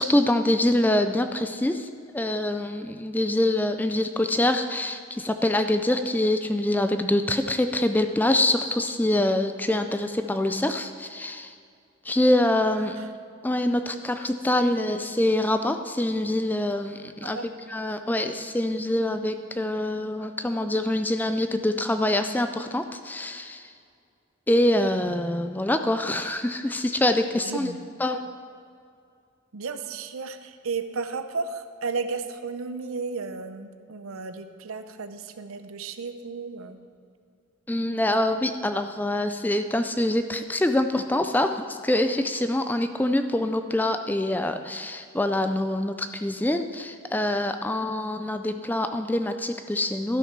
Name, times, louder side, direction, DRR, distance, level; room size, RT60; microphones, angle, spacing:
voice 1, 0.0-1.9 2.1-11.5 12.0-13.0 13.4-17.4 17.7-23.7 24.5-27.7 28.0-28.2 37.7-50.2, left 1 dB, 10° left, 8 dB, 0.3 m, -25 dB
voice 2, 12.8-13.1 17.2-17.5 27.4-27.8 28.1-28.2 29.5-36.8, right 4 dB, 75° right, 9 dB, 0.7 m, -34 dB
12.5 x 6.2 x 5.9 m, 2.3 s
head